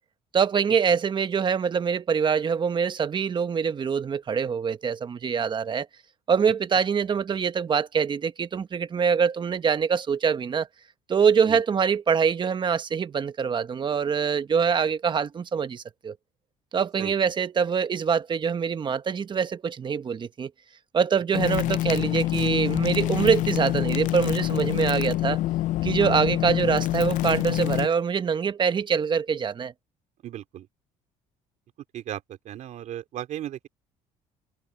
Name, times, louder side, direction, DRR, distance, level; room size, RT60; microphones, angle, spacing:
voice 1, 0.3-5.9 6.3-10.7 11.1-16.1 16.7-20.5 20.9-25.4 25.8-29.7, right 6 dB, 35° right, 1.1 m, -24 dB
sound 1, 21.3-27.9, left 15 dB, 65° left, 0.5 m, -26 dB
voice 2, 30.2-30.7 31.9-33.7, right 12 dB, 60° right, 3.3 m, -36 dB
cardioid pair, 105°, 14 cm